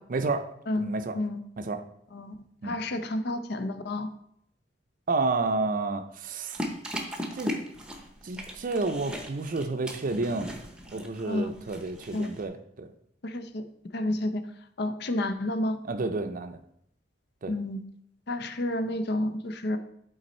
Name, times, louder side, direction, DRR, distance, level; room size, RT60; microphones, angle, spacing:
voice 1, 0.1-0.5 0.8-1.2 1.6-1.8 2.6-2.8 5.1-6.6 7.3-7.5 8.2-10.5 10.9-12.9 15.8-16.6 17.4-17.5, right 3 dB, 45° right, 7 dB, 0.5 m, -30 dB
voice 2, 2.6-4.1 11.3-11.5 12.1-12.3 13.2-13.6 13.9-14.5 14.8-15.8 17.5-17.8 18.3-19.8, left 1 dB, 60° left, 9 dB, 0.6 m, -30 dB
sound 1, 6.5-12.4, equal, 5° right, 0.8 m, -38 dB
7.8 x 4.0 x 4.3 m, 0.73 s
head